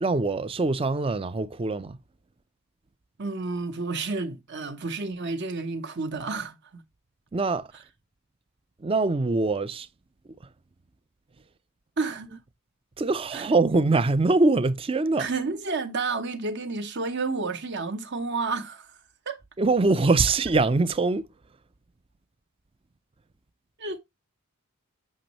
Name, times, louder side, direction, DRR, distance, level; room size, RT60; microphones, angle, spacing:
voice 1, 0.0-2.0 7.3-7.7 8.8-9.9 13.0-15.3 19.6-21.3, right 3 dB, 25° right, 0.4 m, -23 dB
voice 2, 3.2-6.8 12.0-12.4 13.3-13.5 15.2-18.9 19.3-19.4 23.8-24.0, right 3 dB, 50° right, 0.9 m, -30 dB
6.6 x 6.1 x 2.9 m
head